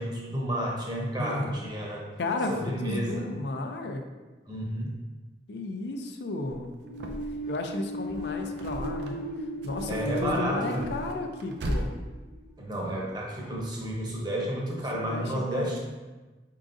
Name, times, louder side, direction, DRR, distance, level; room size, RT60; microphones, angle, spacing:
voice 1, 0.0-2.1 2.5-3.3 4.5-5.0 9.9-10.9 12.6-15.8, right 1 dB, 25° right, -3 dB, 0.8 m, -31 dB
voice 2, 1.0-1.6 2.2-4.0 5.5-6.7 7.5-9.2 9.6-11.9 14.7-15.8, left 2 dB, 75° left, 5 dB, 0.5 m, -33 dB
sound 1, 6.5-7.5 7.9-9.3 9.6-11.9, right 1 dB, 75° right, 0.5 m, -37 dB
sound 2, 6.8-12.5, equal, 60° right, 1.4 m, -36 dB
4.8 x 3.8 x 2.6 m, 1.2 s
head